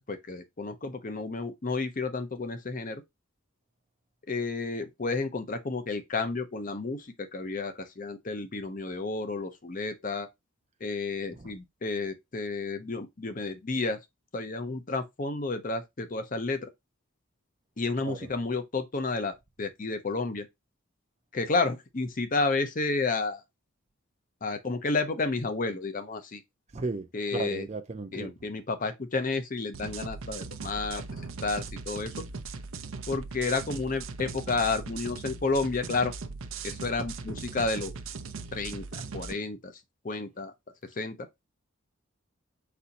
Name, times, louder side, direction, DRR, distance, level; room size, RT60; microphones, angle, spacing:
voice 1, 0.1-3.0 4.3-10.3 10.8-14.0 14.3-16.7 17.8-20.5 21.3-23.4 24.4-26.4 27.1-27.7 28.1-31.0 31.4-32.2 33.1-36.1 36.6-37.9 38.5-39.7 40.0-40.5 41.0-41.2, left 3 dB, 40° left, 0.7 m, -31 dB
voice 2, 26.7-27.1 27.3-28.3, right 3 dB, 30° right, 0.5 m, -34 dB
sound 1, 29.7-39.3, right 4 dB, 75° right, 0.6 m, -39 dB
4.3 x 2.7 x 4.0 m
head